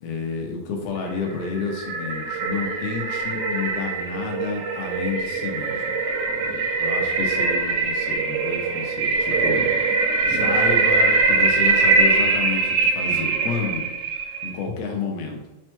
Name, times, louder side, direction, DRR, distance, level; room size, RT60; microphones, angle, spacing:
voice 1, 0.0-6.0 6.8-9.6 10.3-13.9 14.4-15.4, left 5 dB, 85° left, 1 dB, 2.6 m, -30 dB
sound 1, 1.2-14.6, right 3 dB, 80° right, 2.0 m, -22 dB
7.1 x 2.9 x 2.2 m, 1.1 s
omnidirectional pair, 4.4 m